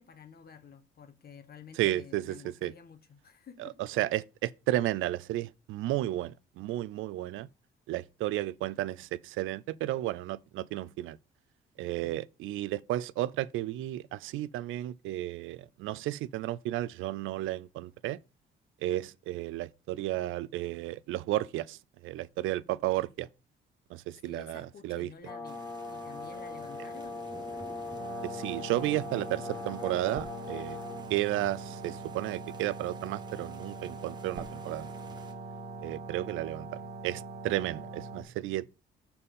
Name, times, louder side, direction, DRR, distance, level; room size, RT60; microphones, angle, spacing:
voice 1, 0.0-3.8 11.8-12.3 24.2-25.6 25.9-27.3, left 6 dB, 50° left, 1.3 m, -51 dB
voice 2, 1.8-2.7 3.6-3.7 4.0-7.5 7.9-11.2 11.8-18.2 18.8-23.3 23.9-25.1 28.2-30.8 31.1-34.9 35.8-38.8, right 15 dB, 85° right, 0.4 m, -33 dB
Brass instrument, 25.2-31.1, left 3 dB, 10° left, 2.1 m, -40 dB
sound 1, 25.4-35.3, right 3 dB, 20° right, 1.4 m, -52 dB
sound 2, 28.0-38.2, right 3 dB, 55° right, 1.2 m, -42 dB
7.0 x 4.2 x 5.4 m
cardioid pair, 90°, 20 cm